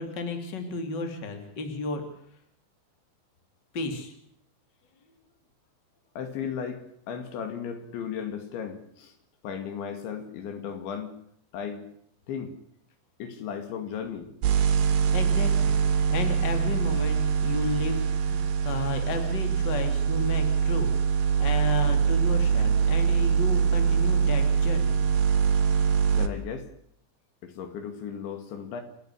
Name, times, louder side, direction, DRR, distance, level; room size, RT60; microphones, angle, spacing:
voice 1, 0.0-2.0 3.7-4.1 15.1-20.9 21.4-25.0, left 3 dB, 25° left, 6 dB, 3.0 m, -33 dB
voice 2, 6.2-9.1 9.4-11.1 11.5-11.9 12.3-12.5 13.2-14.3 26.1-26.7 27.4-28.8, left 7 dB, 75° left, 8 dB, 4.6 m, -35 dB
sound 1, 14.4-26.3, right 7 dB, 65° right, 2.9 m, -23 dB
28.5 x 11.0 x 9.8 m, 0.70 s
omnidirectional pair, 5.3 m